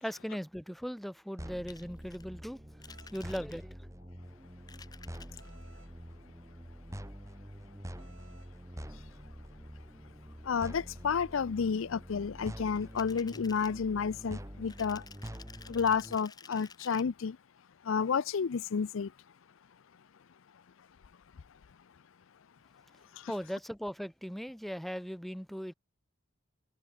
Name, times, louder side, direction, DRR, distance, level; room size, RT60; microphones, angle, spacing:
voice 1, 0.0-2.6 2.9-3.8 23.3-25.7, equal, ahead, 0.8 m, -39 dB
sound 1, 1.4-16.1, equal, 15° right, 2.8 m, -46 dB
sound 2, 1.7-2.2 2.8-3.8 4.6-5.5 12.7-13.8 14.7-17.0, left 5 dB, 20° left, 1.1 m, -53 dB
sound 3, 2.9-3.2 5.4-5.9 8.0-8.5, right 4 dB, 60° right, 4.7 m, -61 dB
voice 2, 10.4-15.0 15.7-17.4 17.8-19.1 23.1-23.3, left 6 dB, 70° left, 0.5 m, -31 dB
head